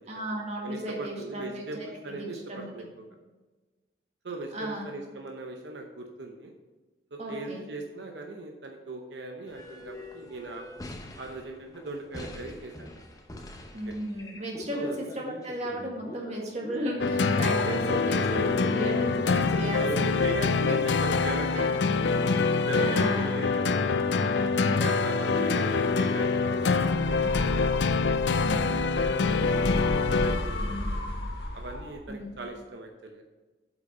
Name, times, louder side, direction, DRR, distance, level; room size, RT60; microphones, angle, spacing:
voice 1, 0.1-2.7 4.5-4.8 7.2-7.6 13.7-20.1 20.6-20.8 21.6-21.7 22.7-23.3 24.2-24.9 25.3-25.5 28.4-28.8 30.6-30.9 32.1-32.3, right 1 dB, 40° right, -1 dB, 1.9 m, -35 dB
voice 2, 0.6-3.0 4.2-6.5 7.1-10.7 11.2-13.0 13.9-14.0 14.7-15.0 19.7-22.1 22.6-23.9 24.7-27.7 28.4-31.1 31.5-33.2, right 2 dB, 80° right, 2 dB, 0.8 m, -39 dB
sound 1, 9.5-17.9 18.8-18.9 19.3-19.4 19.6-19.8 20.2-20.3 21.9-22.0, left 1 dB, 20° left, 0.8 m, -45 dB
sound 2, 17.0-30.8, left 4 dB, 80° left, 0.5 m, -25 dB
sound 3, 26.9-32.2, left 1 dB, 60° left, 2.1 m, -34 dB
7.9 x 5.9 x 5.4 m, 1.2 s
head